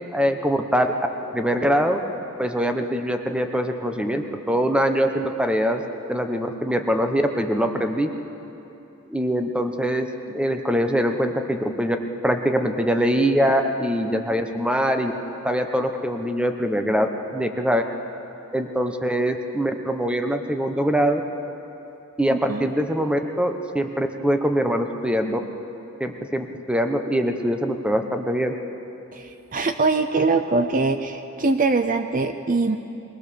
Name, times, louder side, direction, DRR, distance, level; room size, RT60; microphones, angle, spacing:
voice 1, 0.1-0.9 1.3-2.0 2.4-5.8 6.1-8.1 9.1-12.0 12.2-15.1 15.4-17.1 17.3-17.8 18.5-21.2 22.2-25.4 26.0-28.6, equal, 5° right, 5 dB, 1.0 m, -23 dB
voice 2, 22.3-22.7 29.1-32.8, right 3 dB, 35° right, 8 dB, 0.7 m, -23 dB
22.0 x 20.0 x 7.0 m, 2.9 s
head